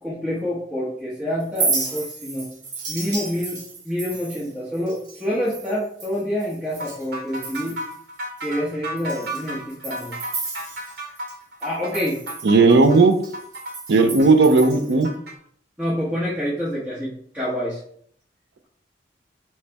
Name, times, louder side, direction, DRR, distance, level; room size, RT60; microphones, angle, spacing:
voice 1, 0.0-2.5 2.9-7.8 8.4-10.1 11.6-12.2 15.8-17.8, equal, 10° right, -9 dB, 1.0 m, -27 dB
Chink clink, 1.4-7.1 7.3-8.0 8.4-8.5 9.0-11.3 11.6-15.1, right 4 dB, 45° right, 1.4 m, -32 dB
sound 1, 6.8-15.4, right 1 dB, 60° right, 0.9 m, -34 dB
voice 2, 12.4-13.2 13.9-15.1, right 3 dB, 75° right, 7 dB, 0.6 m, -15 dB
3.3 x 3.2 x 4.5 m, 0.63 s
head